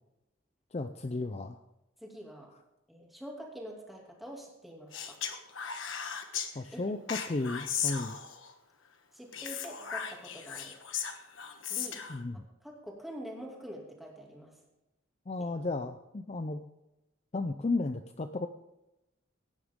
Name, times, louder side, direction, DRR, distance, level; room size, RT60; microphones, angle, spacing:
voice 1, 0.7-1.6 6.5-8.2 12.1-12.4 15.3-16.6 17.3-18.5, left 3 dB, 30° left, 8 dB, 0.5 m, -34 dB
voice 2, 2.0-2.5 2.9-5.2 6.7-6.9 9.1-10.8 11.7-12.0 12.6-14.6 15.4-15.5, equal, ahead, -2 dB, 2.6 m, -45 dB
Speech, 4.9-6.5 7.1-8.5 9.3-12.2, left 8 dB, 75° left, 1.3 m, -37 dB
17.0 x 9.8 x 3.7 m, 0.93 s
head